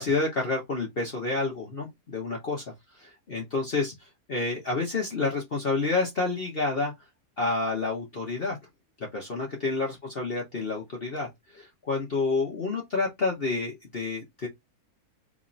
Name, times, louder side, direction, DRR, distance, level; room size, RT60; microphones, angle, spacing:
voice 1, 0.0-2.6 3.0-3.9 4.3-6.9 7.4-8.6 9.1-11.3 11.5-14.5, left 3 dB, 40° left, 1.1 m, -29 dB
3.1 x 2.9 x 3.7 m
omnidirectional pair, 1.7 m